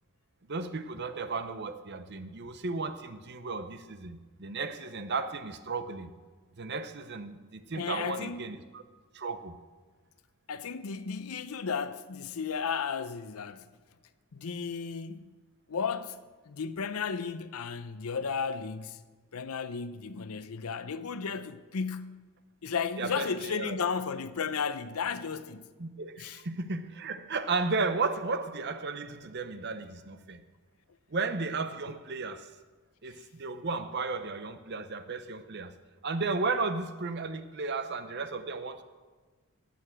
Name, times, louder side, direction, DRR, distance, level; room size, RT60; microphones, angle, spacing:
voice 1, 0.5-6.1 6.6-8.8 9.1-9.6 23.0-23.8 25.8-30.4 31.1-32.5 33.0-35.7 36.0-38.8, right 4 dB, 50° right, 0.8 m, -34 dB
voice 2, 7.7-8.5 10.5-13.7 14.3-15.4 15.7-19.0 19.3-22.3 22.6-25.7 26.2-26.4 33.1-33.2, left 6 dB, 80° left, 0.6 m, -34 dB
11.0 x 8.6 x 7.4 m
head